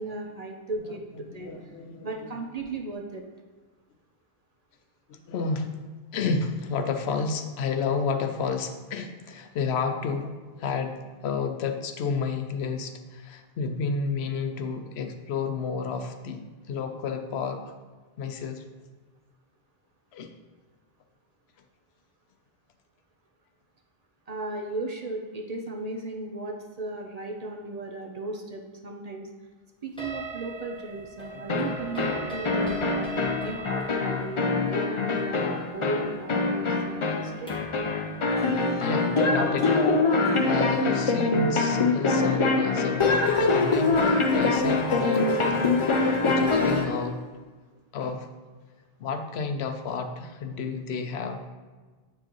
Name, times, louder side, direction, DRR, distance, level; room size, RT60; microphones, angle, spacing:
voice 1, 0.0-1.7 2.0-3.2 24.3-29.3 29.8-33.1 33.4-37.5, right 2 dB, 45° right, 1 dB, 0.6 m, -36 dB
voice 2, 0.9-2.3 5.1-5.8 6.1-16.4 16.7-17.6 18.2-18.6 20.1-20.3 31.3-31.5 38.7-39.8 40.1-45.6 46.3-47.2 47.9-48.3 49.0-51.4, left 5 dB, 85° left, 7 dB, 0.9 m, -31 dB
sound 1, 30.0-37.8, right 2 dB, 5° left, 0.9 m, -40 dB
sound 2, 31.5-47.0, left 3 dB, 40° left, 0.4 m, -24 dB
7.6 x 4.6 x 3.0 m, 1.4 s
omnidirectional pair, 1.1 m